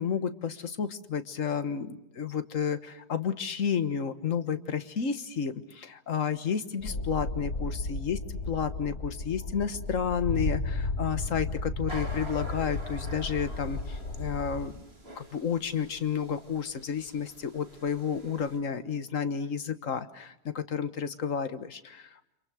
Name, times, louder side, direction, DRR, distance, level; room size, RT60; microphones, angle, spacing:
voice 1, 0.0-8.2 8.5-14.9 15.2-22.3, left 7 dB, 55° left, 10 dB, 1.7 m, -31 dB
sound 1, 6.8-14.7, left 2 dB, 90° left, 3.4 m, -34 dB
sound 2, 11.9-18.6, right 1 dB, 40° right, 4.4 m, -46 dB
29.5 x 27.0 x 6.3 m, 0.85 s
omnidirectional pair, 1.6 m